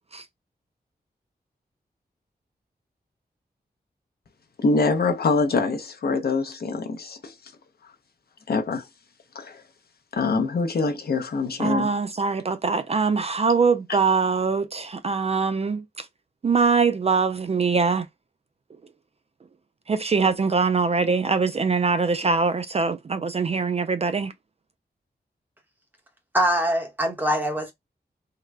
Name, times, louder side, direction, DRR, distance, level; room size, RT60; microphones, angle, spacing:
voice 1, 4.6-7.3 8.5-8.8 9.3-9.6 10.1-11.9, left 3 dB, 65° left, 0.7 m, -24 dB
voice 2, 11.6-16.1 16.4-18.1 19.9-24.3, right 4 dB, 40° right, 0.3 m, -23 dB
voice 3, 26.3-27.7, equal, 10° right, 0.9 m, -23 dB
3.7 x 2.1 x 3.3 m
wide cardioid pair, 135°, 17 cm